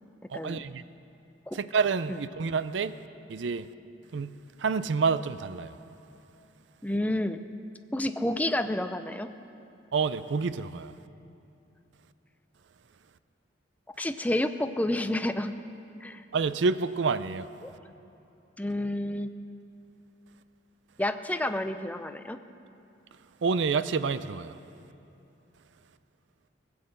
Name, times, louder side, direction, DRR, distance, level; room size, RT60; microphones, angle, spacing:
voice 1, 0.3-0.8 1.5-3.0 3.3-3.7 4.1-5.8 9.9-11.0 16.3-17.5 23.4-24.6, right 5 dB, 80° right, 0.5 m, -28 dB
voice 2, 6.8-7.4 7.9-9.3 14.0-15.5 16.0-16.2 17.6-17.7 18.6-19.3 21.0-22.4, left 1 dB, 10° left, 0.5 m, -29 dB
19.0 x 7.8 x 8.0 m
head